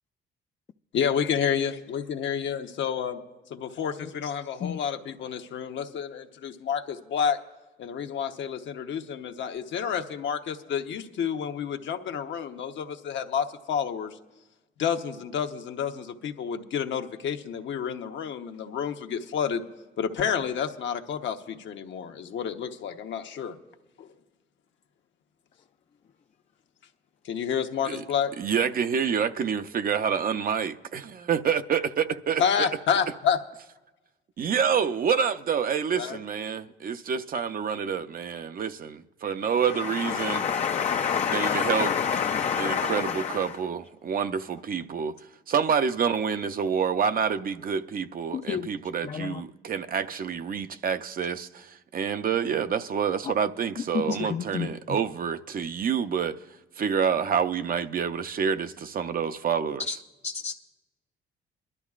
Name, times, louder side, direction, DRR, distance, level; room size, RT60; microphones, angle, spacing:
voice 1, 0.9-3.2 3.5-7.4 7.8-14.1 14.8-19.7 20.0-23.5 24.0-24.1 27.2-28.3 32.4-33.4 35.9-36.2, left 7 dB, 70° left, 0.9 m, -29 dB
voice 2, 28.4-32.7 34.4-40.5 41.3-41.9 42.6-45.2 45.5-56.4 56.8-59.8, right 7 dB, 45° right, 0.6 m, -27 dB
voice 3, 39.5-43.6 48.3-48.7 49.0-49.4 53.2-53.3 53.9-55.0 59.9-60.0 60.2-60.5, left 7 dB, 35° left, 0.4 m, -28 dB
22.5 x 12.0 x 2.4 m
cardioid pair, 90°, 20 cm